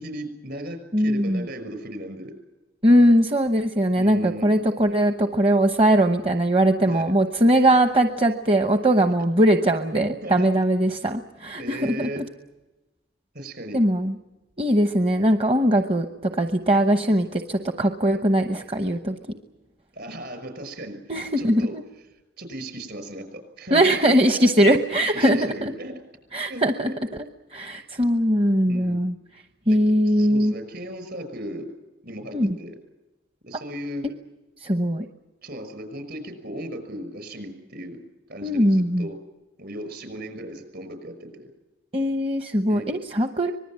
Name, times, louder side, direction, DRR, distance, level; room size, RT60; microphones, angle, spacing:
voice 1, 0.0-2.3 4.0-4.6 6.9-7.2 10.2-10.5 11.6-12.2 13.3-13.8 19.9-21.0 21.4-21.7 22.4-24.4 25.1-25.9 26.5-27.0 28.7-29.1 29.7-29.8 30.0-31.7 32.0-32.8 33.5-34.1 35.4-38.0 38.3-39.2 39.6-41.5 42.7-43.0, right 1 dB, 55° right, 8 dB, 5.9 m, -36 dB
voice 2, 0.9-1.5 2.8-12.2 13.7-14.2 14.6-19.1 21.1-21.8 23.7-25.7 26.3-26.9 27.5-29.1 29.7-30.5 32.3-32.6 34.6-35.1 38.4-39.1 41.9-43.5, right 1 dB, 30° right, 6 dB, 0.9 m, -20 dB
25.5 x 20.5 x 7.6 m, 1.1 s
head